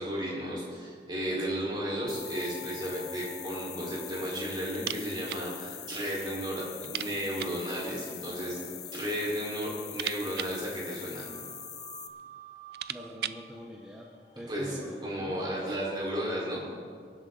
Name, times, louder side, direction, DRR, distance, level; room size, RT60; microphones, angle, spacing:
voice 1, 0.0-8.6 8.9-11.3 14.5-16.7, equal, 25° right, -4 dB, 4.6 m, -34 dB
sound 1, 1.5-10.3 11.2-16.0, left 2 dB, 60° left, 3.4 m, -52 dB
sound 2, 2.1-12.1, left 11 dB, 40° left, 0.8 m, -43 dB
sound 3, 4.7-5.5 5.8-5.9 6.2-6.3 6.8-7.7 8.6-9.2 9.5-11.5 12.2-12.3 12.6-13.5, right 11 dB, 65° right, 0.4 m, -39 dB
voice 2, 12.9-15.8, equal, 5° right, -1 dB, 0.9 m, -45 dB
23.0 x 11.5 x 4.0 m, 2.1 s
head